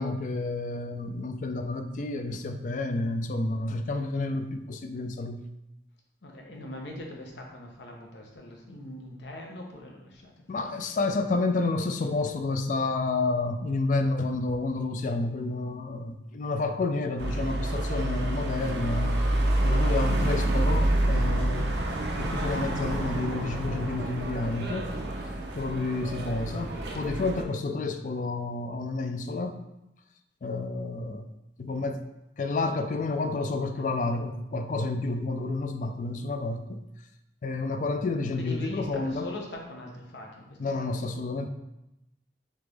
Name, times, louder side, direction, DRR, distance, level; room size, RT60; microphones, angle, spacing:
voice 1, 0.0-5.4 10.5-19.2 19.6-21.8 22.2-24.9 25.6-29.6 30.4-31.3 31.6-32.0 32.4-36.8 37.4-39.3 40.6-41.5, left 3 dB, 45° left, 8 dB, 0.3 m, -30 dB
voice 2, 6.2-10.6 33.7-33.9 38.4-40.4, left 1 dB, 85° left, 0 dB, 0.9 m, -41 dB
sound 1, 17.2-27.4, right 1 dB, 75° right, 0.6 m, -28 dB
3.9 x 3.3 x 3.4 m, 0.90 s
head